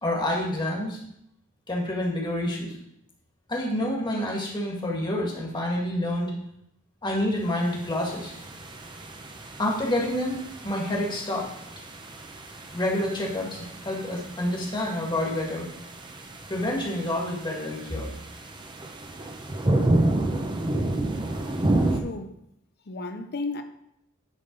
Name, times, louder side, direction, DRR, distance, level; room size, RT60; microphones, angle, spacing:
voice 1, 0.0-1.0 1.7-2.8 3.5-6.3 7.0-8.3 9.6-11.5 12.7-15.7 16.5-18.1, left 1 dB, 20° left, 1.9 m, -28 dB
sound 1, 7.7-22.0, right 1 dB, 20° right, 0.7 m, -30 dB
voice 2, 21.9-22.4 22.9-23.6, left 3 dB, 50° left, 0.6 m, -34 dB
10.0 x 3.9 x 5.3 m
head